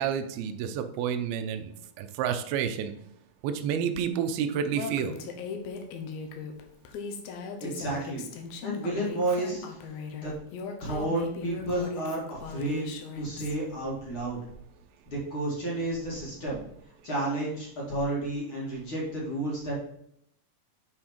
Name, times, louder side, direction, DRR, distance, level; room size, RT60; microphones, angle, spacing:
voice 1, 0.0-1.7 2.0-2.9 3.4-5.2, right 8 dB, 85° right, 9 dB, 2.5 m, -29 dB
Female speech woman speaking, 4.7-13.5, left 5 dB, 80° left, 2.7 m, -39 dB
voice 2, 7.6-8.2 8.6-9.8 10.2-10.3 10.8-12.9 13.2-14.4 15.1-16.6 17.0-19.7, right 1 dB, 40° left, -5 dB, 2.2 m, -31 dB
9.4 x 4.3 x 4.5 m, 0.74 s
omnidirectional pair, 4.3 m